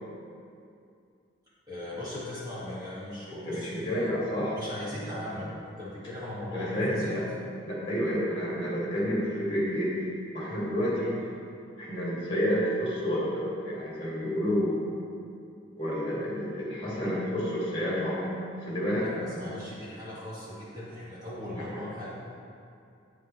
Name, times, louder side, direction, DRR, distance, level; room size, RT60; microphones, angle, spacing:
voice 1, 1.7-4.1 4.5-7.2 18.9-22.1, left 1 dB, 20° right, -9 dB, 1.7 m, -38 dB
voice 2, 3.3-4.6 6.5-7.3 7.6-10.0 10.3-11.2 11.8-14.9 15.8-18.3 18.6-19.4 21.5-21.8, equal, 25° left, -7 dB, 2.2 m, -30 dB
9.2 x 9.1 x 3.1 m, 2.5 s
head